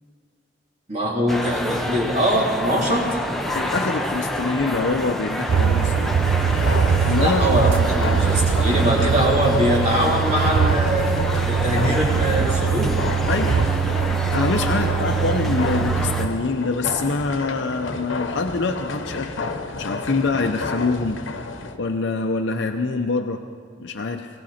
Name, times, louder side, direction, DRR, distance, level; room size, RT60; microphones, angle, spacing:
voice 1, 0.9-3.2 7.2-11.0 11.5-13.0 14.7-15.2, equal, 35° right, -4 dB, 3.3 m, -22 dB
sound 1, 1.3-16.3, equal, ahead, 0.8 m, -28 dB
voice 2, 3.5-6.1 7.0-7.9 13.3-13.6 14.3-23.4 23.8-24.3, left 3 dB, 65° left, 4 dB, 0.6 m, -25 dB
sound 2, 5.5-16.3, right 7 dB, 90° right, 0.4 m, -22 dB
sound 3, 6.5-21.8, left 3 dB, 90° left, 1.0 m, -31 dB
20.5 x 16.5 x 4.3 m, 2.1 s
head